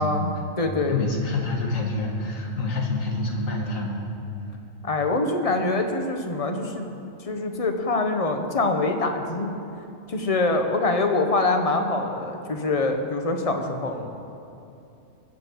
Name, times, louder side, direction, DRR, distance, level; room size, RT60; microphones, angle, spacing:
voice 1, 0.0-1.0 4.8-6.9 7.2-9.6 10.1-14.0, left 2 dB, 30° left, 5 dB, 0.9 m, -24 dB
voice 2, 0.9-4.0 13.9-14.1, left 2 dB, 80° left, 0 dB, 1.9 m, -27 dB
21.0 x 7.7 x 4.6 m, 2.7 s
omnidirectional pair, 1.4 m